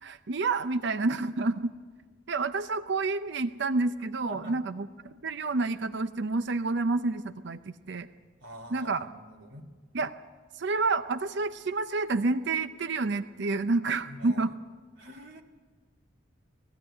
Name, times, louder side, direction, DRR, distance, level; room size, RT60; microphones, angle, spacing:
voice 1, 0.0-1.7 2.3-7.6 7.9-8.1 8.7-9.1 9.9-10.1 10.5-14.5, right 3 dB, 60° right, 12 dB, 0.6 m, -29 dB
voice 2, 8.4-9.7 14.1-14.5 15.0-15.4, equal, 85° right, 1 dB, 2.1 m, -45 dB
19.0 x 15.5 x 9.7 m, 1.5 s
head